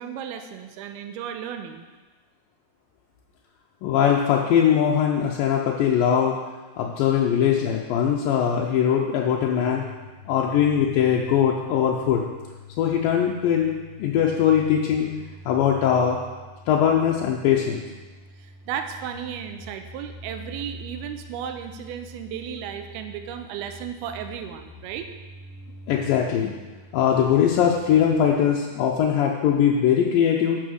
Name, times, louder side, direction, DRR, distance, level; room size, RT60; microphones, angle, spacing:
voice 1, 0.0-1.9 18.4-25.1, right 8 dB, 85° right, 7 dB, 2.5 m, -34 dB
voice 2, 3.8-6.4 6.8-9.8 10.3-12.3 12.8-15.1 15.5-16.2 16.7-17.8 25.9-26.5 26.9-30.6, left 8 dB, 75° left, -1 dB, 2.2 m, -21 dB
sound 1, 9.1-28.3, left 2 dB, 35° right, 1.3 m, -44 dB
10.0 x 5.5 x 6.3 m, 1.3 s
omnidirectional pair, 4.5 m